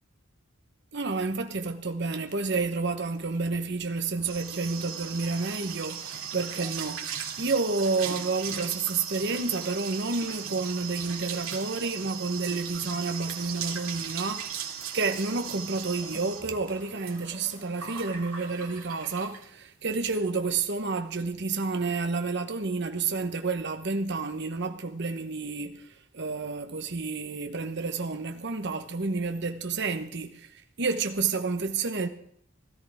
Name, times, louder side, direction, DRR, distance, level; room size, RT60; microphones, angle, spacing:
voice 1, 0.9-32.1, right 4 dB, 55° right, 1.0 m, -30 dB
sound 1, 2.3-5.7 7.0-9.0 9.7-10.5 15.8-19.3, equal, 10° left, 5.9 m, -54 dB
sound 2, 3.8-19.5 19.9-20.2 20.5-20.6 20.9-21.2, right 7 dB, 90° right, 2.5 m, -38 dB
17.0 x 13.5 x 3.5 m
head